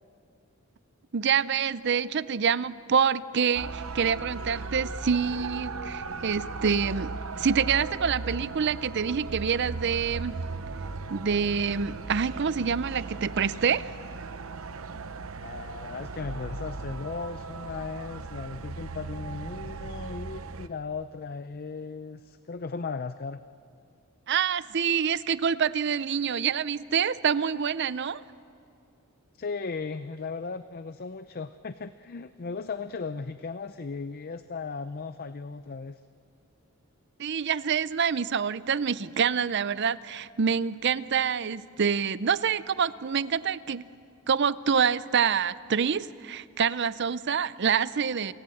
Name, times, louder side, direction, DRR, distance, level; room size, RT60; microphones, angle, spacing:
voice 1, 1.1-7.1 7.4-10.4 11.1-13.9 24.3-28.2 37.2-43.9 44.3-48.3, right 7 dB, 55° right, 17 dB, 0.6 m, -26 dB
sound 1, 3.5-20.7, right 4 dB, 85° right, 0.9 m, -37 dB
voice 2, 15.4-23.4 29.3-36.0, left 4 dB, 45° left, 12 dB, 0.5 m, -36 dB
28.5 x 18.0 x 7.8 m, 2.6 s
head